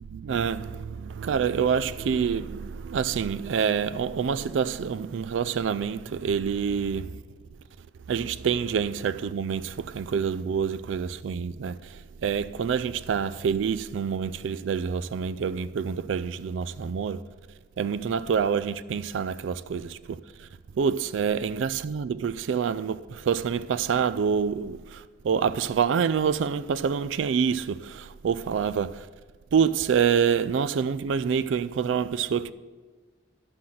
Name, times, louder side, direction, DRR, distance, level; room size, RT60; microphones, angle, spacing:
voice 1, 0.0-7.2 8.1-17.2 17.8-20.5 20.7-29.1 29.5-32.5, right 6 dB, 90° right, 0.4 m, -27 dB
11.5 x 5.8 x 7.6 m
head